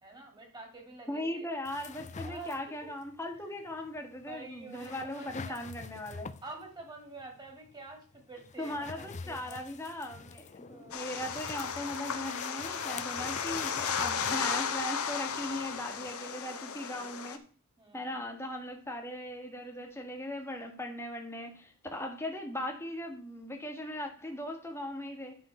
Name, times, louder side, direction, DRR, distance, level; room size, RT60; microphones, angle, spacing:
voice 1, 0.0-1.5 2.2-2.9 4.3-5.6 6.4-9.6 10.7-11.0 16.6-17.1 17.8-18.1, right 3 dB, 20° right, 2.6 m, -48 dB
voice 2, 1.1-6.3 8.6-17.4 17.9-25.4, left 1 dB, 10° left, 1.5 m, -39 dB
sound 1, 1.7-16.1, left 5 dB, 35° left, 0.5 m, -46 dB
sound 2, 10.9-17.4, left 6 dB, 70° left, 1.0 m, -35 dB
10.5 x 5.7 x 4.4 m
head